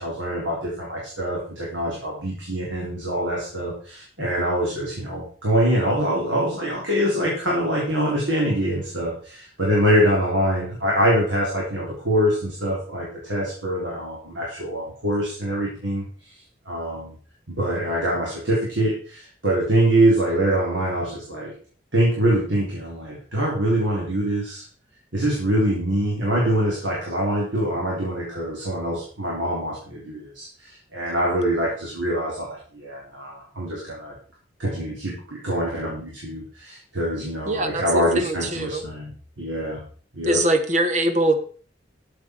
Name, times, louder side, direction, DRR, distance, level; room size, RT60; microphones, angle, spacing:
voice 1, 0.0-16.3 16.7-17.1 17.5-21.5 21.9-24.6 25.1-34.1 34.6-39.8 40.1-40.4, right 1 dB, 90° right, -4 dB, 3.9 m, -24 dB
voice 2, 37.5-37.8 38.1-38.8 40.3-41.4, right 1 dB, 40° right, 9 dB, 1.3 m, -22 dB
13.0 x 8.1 x 4.6 m, 0.43 s
head